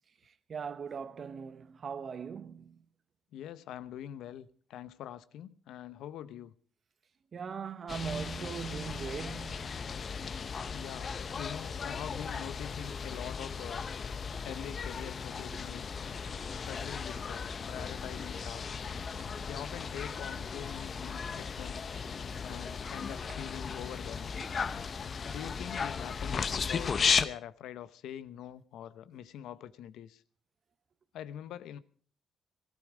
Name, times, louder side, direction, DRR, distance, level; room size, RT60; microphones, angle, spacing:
voice 1, 0.5-2.8 7.3-9.9 23.3-23.4 24.4-24.5, right 6 dB, 50° right, 1.1 m, -40 dB
voice 2, 3.3-6.5 10.7-11.1 11.4-13.9 14.4-16.0 16.5-18.7 19.5-21.9 22.4-24.3 25.3-30.2 31.1-31.8, left 10 dB, 85° left, 0.9 m, -44 dB
sound 1, 7.9-27.2, left 5 dB, 45° left, 0.9 m, -36 dB
18.0 x 13.5 x 4.9 m
cardioid pair, 90°, 0 cm